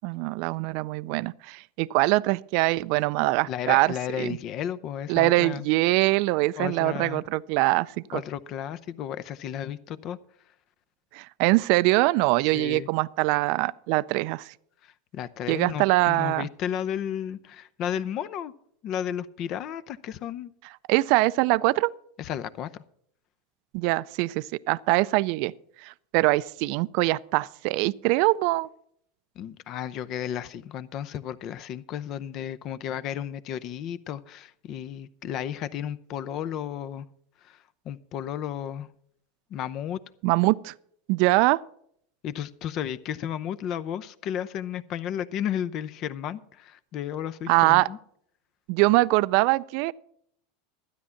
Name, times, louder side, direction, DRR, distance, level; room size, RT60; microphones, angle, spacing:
voice 1, 0.0-4.4 5.1-8.2 11.1-14.5 15.5-16.5 20.9-21.9 23.7-25.5 25.8-28.7 40.2-40.7 41.1-41.6 47.5-47.9 48.7-49.9, right 21 dB, 60° right, 0.4 m, -23 dB
voice 2, 3.5-5.7 6.6-7.2 8.1-10.2 12.5-12.9 14.8-18.5 18.8-20.5 22.2-22.7 29.4-37.1 37.4-37.6 37.8-38.9 39.5-40.0 42.2-48.0, left 9 dB, 50° left, 0.7 m, -33 dB
12.5 x 9.8 x 5.8 m
hypercardioid pair, 105°, 0 cm